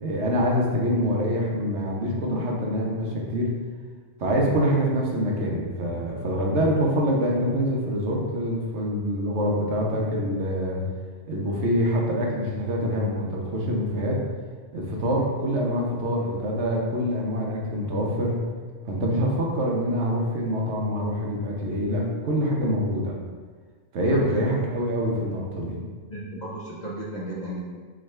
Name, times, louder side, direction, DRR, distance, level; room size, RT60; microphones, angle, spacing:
voice 1, 0.0-3.5 4.2-10.8 11.3-14.2 14.7-18.4 18.9-23.2 23.9-25.8, equal, 65° right, -2 dB, 1.1 m, -25 dB
voice 2, 24.1-24.4 26.1-27.6, right 1 dB, 45° left, -5 dB, 0.6 m, -34 dB
4.3 x 3.7 x 3.2 m, 1.5 s
omnidirectional pair, 1.3 m